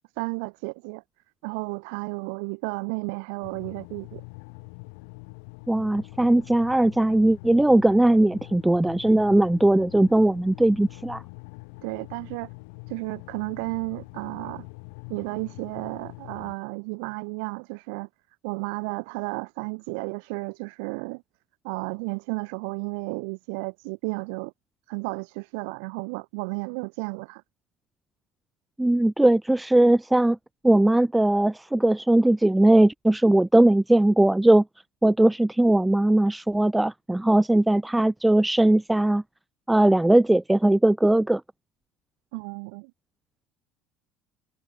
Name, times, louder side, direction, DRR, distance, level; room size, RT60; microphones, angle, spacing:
voice 1, 0.2-1.0 1.4-4.2 11.8-12.5 12.9-14.7 15.1-18.1 18.4-21.2 21.6-24.5 24.9-27.4 42.3-42.9, right 35 dB, 75° right, 1.3 m, -33 dB
sound 1, 3.4-16.6, left 35 dB, 75° left, 3.7 m, -44 dB
voice 2, 5.7-11.2 28.8-30.4 30.6-34.6 35.0-39.2 39.7-41.4, right 1 dB, 5° right, 0.5 m, -19 dB
cardioid pair, 175°, 0 cm